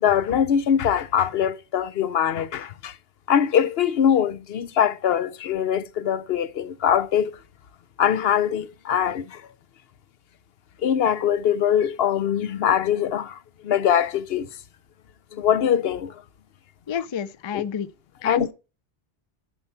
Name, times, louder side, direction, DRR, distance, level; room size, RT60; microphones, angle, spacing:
voice 1, 0.0-2.9 3.3-7.3 8.0-9.4 10.8-14.5 15.3-16.1 17.5-17.7 18.2-18.5, left 9 dB, 75° left, 0.9 m, -22 dB
voice 2, 16.9-17.9 18.2-18.5, left 7 dB, 45° left, 0.4 m, -30 dB
10.5 x 4.5 x 5.6 m
omnidirectional pair, 1.0 m